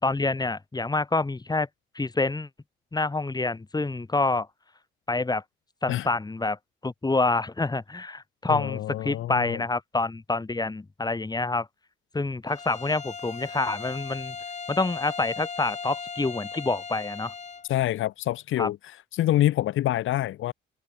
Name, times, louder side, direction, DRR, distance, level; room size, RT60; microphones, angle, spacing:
voice 1, 0.0-1.7 1.9-2.5 2.9-4.5 5.1-5.4 5.8-6.6 6.8-11.7 12.1-14.4 14.7-17.3 18.6-18.7, left 3 dB, 20° left, 4.2 m, -27 dB
voice 2, 8.5-9.6 17.7-18.8 19.1-20.5, left 14 dB, 80° left, 2.8 m, -26 dB
Bowed string instrument, 12.5-17.7, left 5 dB, 35° left, 4.5 m, -38 dB
cardioid pair, 90°, 20 cm